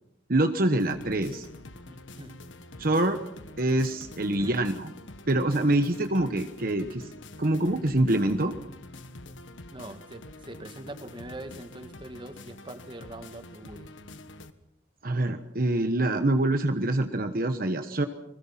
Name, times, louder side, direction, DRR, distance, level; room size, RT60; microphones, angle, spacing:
voice 1, 0.3-1.5 2.8-3.2 3.6-4.9 5.3-7.1 7.4-8.6 15.0-18.1, right 1 dB, 50° right, 8 dB, 1.2 m, -25 dB
sound 1, 0.8-14.5, left 2 dB, 85° left, 1.5 m, -46 dB
voice 2, 1.9-2.4 2.7-3.0 4.3-4.6 9.7-13.9, right 1 dB, 25° right, 9 dB, 1.7 m, -43 dB
29.5 x 21.0 x 5.8 m, 0.81 s
head